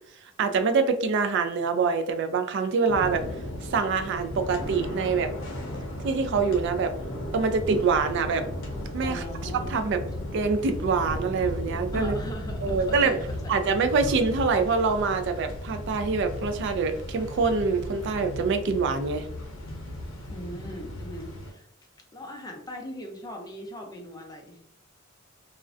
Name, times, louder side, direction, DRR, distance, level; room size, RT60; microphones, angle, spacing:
voice 1, 0.4-3.2 3.6-5.3 6.0-6.9 7.3-8.4 8.9-10.0 10.3-12.1 12.6-13.2 13.5-19.3, right 4 dB, 60° right, 8 dB, 0.3 m, -25 dB
sound 1, 2.9-21.5, left 1 dB, 85° left, 0.6 m, -35 dB
voice 2, 9.0-9.7 11.9-13.6 20.3-21.7 22.1-24.6, equal, 20° left, 2 dB, 0.4 m, -40 dB
2.4 x 2.1 x 2.4 m, 0.67 s
head